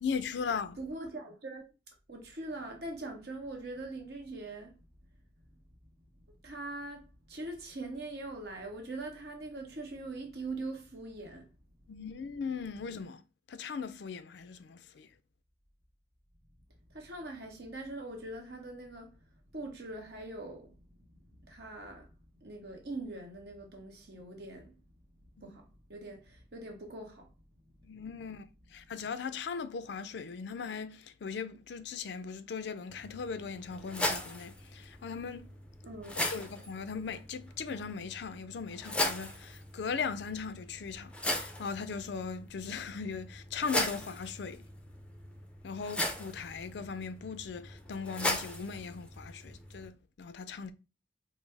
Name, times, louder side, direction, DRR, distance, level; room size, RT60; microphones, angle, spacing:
voice 1, 0.0-0.8 11.9-13.2 13.5-15.1 25.4-25.6 27.8-28.4 28.7-35.4 36.2-44.6 45.6-50.7, left 5 dB, 70° left, 0.4 m, -39 dB
voice 2, 0.8-1.7 2.1-4.7 6.4-11.5 16.9-19.1 19.5-20.7 21.3-22.0 22.4-24.7 25.4-27.3 35.8-36.2, right 2 dB, 60° right, 1.1 m, -42 dB
sound 1, 32.9-49.9, left 1 dB, 5° left, 0.5 m, -38 dB
5.1 x 2.0 x 3.3 m
head